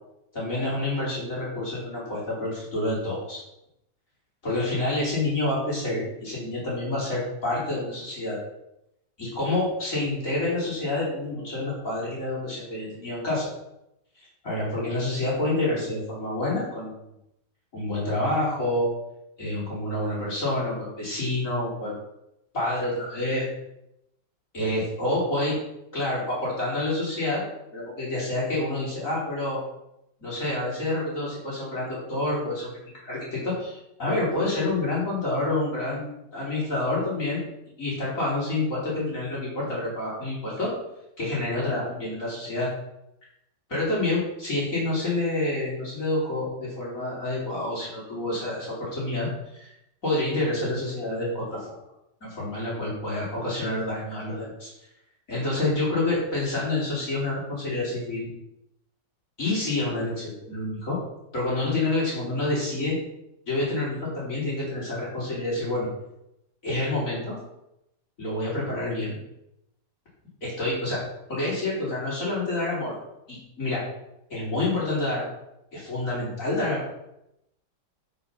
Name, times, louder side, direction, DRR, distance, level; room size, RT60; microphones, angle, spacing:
voice 1, 0.3-3.4 4.4-8.4 9.2-13.5 14.4-17.1 17.7-18.9 19.4-21.9 22.5-23.5 24.5-25.6 25.9-27.4 27.7-29.6 30.2-37.4 37.8-40.7 41.2-42.7 43.7-49.3 49.5-49.7 50.0-51.8 52.3-54.7 55.3-58.3 59.4-61.0 61.3-63.0 63.5-65.9 66.6-67.4 68.2-69.2 70.4-71.0 71.3-73.0 73.3-73.8 74.3-75.3 75.7-76.8, left 2 dB, 45° left, -6 dB, 4.7 m, -28 dB
12.5 x 5.5 x 5.8 m, 0.83 s
omnidirectional pair, 1.9 m